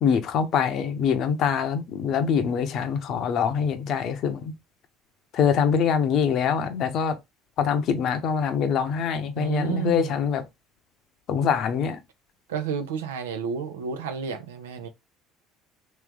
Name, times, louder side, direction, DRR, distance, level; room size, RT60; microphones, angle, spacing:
voice 1, 0.0-4.5 5.3-7.2 7.6-10.4 11.3-12.0, left 7 dB, 55° left, 0.8 m, -24 dB
voice 2, 9.4-10.2 12.5-14.9, right 7 dB, 90° right, 0.8 m, -31 dB
3.2 x 3.2 x 3.6 m
hypercardioid pair, 75°, 0 cm